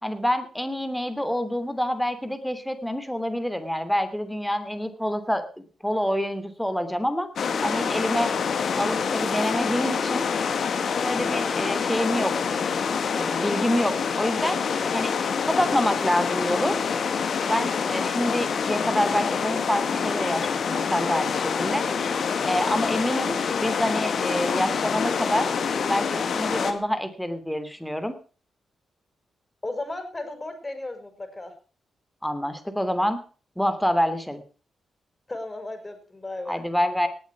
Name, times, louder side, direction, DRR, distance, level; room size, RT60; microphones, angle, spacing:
voice 1, 0.0-7.3 7.6-8.3 8.8-10.2 11.0-12.3 13.1-14.6 14.9-15.1 15.5-16.7 17.4-21.8 22.4-25.5 25.9-28.1 32.2-33.2 33.6-34.4 36.5-37.1, equal, 5° left, 10 dB, 3.0 m, -27 dB
sound 1, 7.4-26.7, left 6 dB, 65° left, 2.0 m, -26 dB
voice 2, 29.6-31.5 35.3-36.6, left 2 dB, 25° left, 7 dB, 5.4 m, -35 dB
19.0 x 8.5 x 4.8 m, 0.38 s
supercardioid pair, 50°, 0 cm